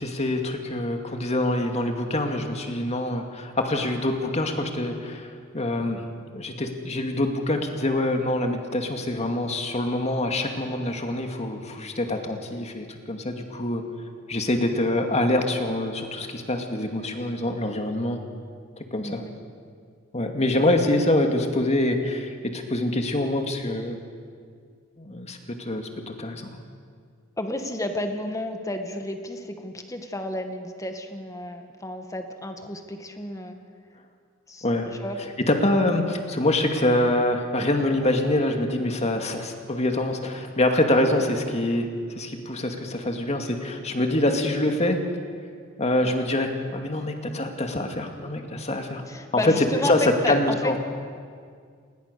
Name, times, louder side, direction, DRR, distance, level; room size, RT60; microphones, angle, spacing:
voice 1, 0.0-6.0 6.3-13.8 14.3-18.2 18.8-19.2 20.1-24.0 25.0-26.6 34.6-34.9 35.2-45.0 45.8-49.0 49.3-50.8, left 1 dB, 35° left, 4 dB, 2.3 m, -25 dB
voice 2, 19.0-19.3 27.4-33.6 34.5-34.7 35.0-35.2 49.1-50.8, left 1 dB, 15° left, 6 dB, 2.0 m, -31 dB
28.5 x 20.5 x 6.9 m, 2.1 s
head